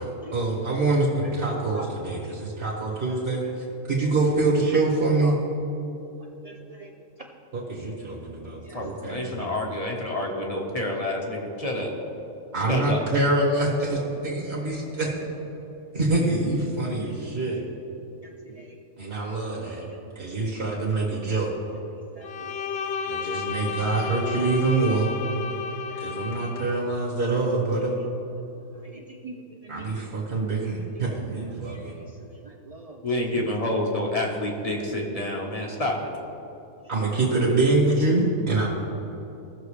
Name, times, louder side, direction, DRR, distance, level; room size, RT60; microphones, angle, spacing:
voice 1, 0.0-3.4 3.9-5.4 7.5-9.5 12.5-15.1 15.9-17.6 19.0-19.8 20.2-21.5 23.1-25.1 26.0-28.0 29.7-31.9 36.9-38.7, right 2 dB, 45° right, -4 dB, 1.8 m, -25 dB
voice 2, 6.4-6.9 8.7-8.8 18.5-18.7 22.2-22.8 25.7-26.0 28.8-29.3 29.6-29.9 31.6-32.0 32.7-33.0 33.3-33.5 35.3-35.4, right 3 dB, 65° right, 1 dB, 0.3 m, -43 dB
voice 3, 8.7-11.9 12.5-13.0 33.0-35.9, left 1 dB, 25° left, -1 dB, 1.3 m, -28 dB
Bowed string instrument, 22.2-26.9, left 5 dB, 65° left, 0.6 m, -32 dB
17.0 x 6.4 x 3.3 m, 3.0 s
omnidirectional pair, 1.4 m